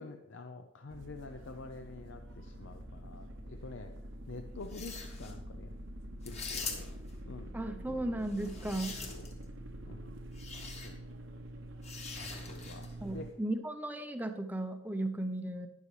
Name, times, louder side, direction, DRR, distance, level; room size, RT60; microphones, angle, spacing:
voice 1, 0.0-3.9 4.3-5.7 6.2-6.9 7.3-7.5 7.9-8.0 8.7-8.8 9.1-9.2 9.9-10.1 10.8-11.0 12.1-12.9 13.1-13.3, left 3 dB, 60° left, 6 dB, 0.6 m, -47 dB
sound 1, 0.9-13.3, right 1 dB, 60° right, 0.9 m, -46 dB
sound 2, 4.6-5.3 6.2-7.1 8.3-9.4 10.3-10.9 11.8-12.9, left 5 dB, 30° left, 1.3 m, -43 dB
voice 2, 7.5-9.0 13.0-15.7, right 1 dB, 10° right, 7 dB, 0.6 m, -35 dB
12.0 x 10.0 x 3.2 m, 0.95 s
head